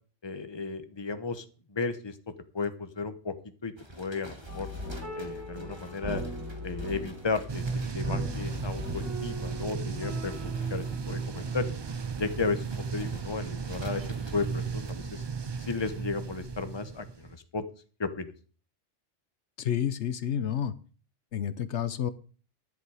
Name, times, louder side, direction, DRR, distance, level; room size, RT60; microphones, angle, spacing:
voice 1, 0.2-1.4 1.7-2.2 2.5-3.3 3.6-4.7 5.1-6.2 6.6-7.6 7.9-11.7 12.2-14.0 14.3-15.2 15.6-17.7 18.0-18.3, left 4 dB, 25° left, 10 dB, 1.1 m, -34 dB
sound 1, 3.8-14.9, right 1 dB, 25° right, 1.9 m, -50 dB
sound 2, 4.5-12.1 12.4-12.5, equal, 80° right, 8.2 m, -40 dB
sound 3, 7.5-17.3, right 5 dB, 45° right, 0.3 m, -35 dB
voice 2, 19.6-20.7 21.3-22.1, left 9 dB, 75° left, 15 dB, 1.1 m, -30 dB
11.0 x 10.5 x 4.9 m, 0.39 s
omnidirectional pair, 1.2 m